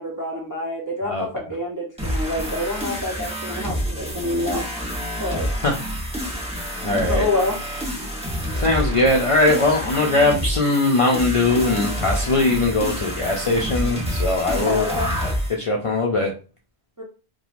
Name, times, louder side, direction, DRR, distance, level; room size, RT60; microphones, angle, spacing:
voice 1, 0.0-4.7 5.2-5.5 7.1-7.6 14.5-15.1 17.0-17.1, left 2 dB, 30° right, -2 dB, 0.3 m, -27 dB
sound 1, 2.0-15.5, equal, 5° right, 0.8 m, -28 dB
voice 2, 6.8-7.2 8.5-14.9 15.5-16.3, left 2 dB, 55° left, -1 dB, 0.3 m, -20 dB
3.0 x 2.2 x 2.4 m, 0.34 s
omnidirectional pair, 1.1 m